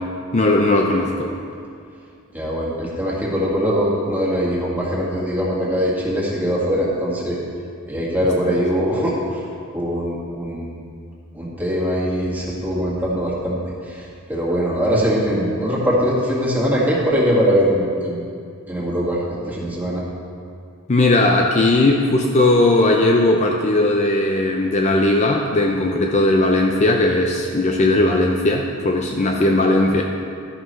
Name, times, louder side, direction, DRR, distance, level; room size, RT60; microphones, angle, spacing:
voice 1, 0.0-1.3 8.5-8.6 20.9-30.0, left 2 dB, 30° left, 1 dB, 0.5 m, -18 dB
voice 2, 2.3-7.4 7.9-9.4 9.7-10.8 11.3-13.6 13.8-18.2 18.7-19.2 19.5-20.0, equal, 10° right, -6 dB, 1.8 m, -21 dB
12.0 x 9.7 x 3.2 m, 2.3 s
head